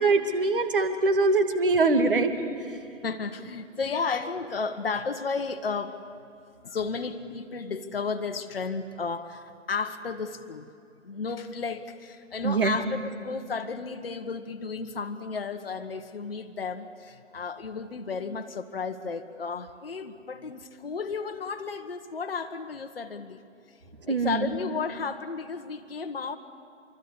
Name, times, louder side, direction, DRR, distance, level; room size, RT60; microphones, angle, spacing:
voice 1, 0.0-2.3 2.7-2.8 12.4-12.8 24.1-24.5, right 3 dB, 45° right, 7 dB, 2.4 m, -23 dB
voice 2, 3.0-6.0 6.6-10.7 11.0-23.4 24.1-26.4, left 5 dB, 50° left, 7 dB, 1.4 m, -33 dB
26.0 x 23.5 x 8.4 m, 2.4 s
figure-of-eight pair, 145°, 39 cm